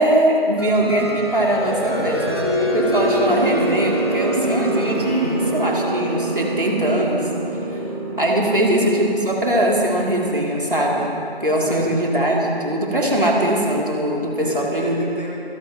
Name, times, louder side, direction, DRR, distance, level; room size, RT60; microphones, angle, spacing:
voice 1, 0.0-2.2 2.6-7.3 7.7-7.8 8.2-11.1 11.4-15.0, right 1 dB, 55° right, -2 dB, 2.9 m, -21 dB
sound 1, 0.6-13.1, right 1 dB, 25° right, 1.2 m, -26 dB
voice 2, 1.8-2.7 11.7-12.0 14.4-15.4, left 1 dB, 45° left, 0 dB, 1.8 m, -31 dB
27.0 x 11.5 x 3.0 m, 2.5 s
figure-of-eight pair, 170°, 31 cm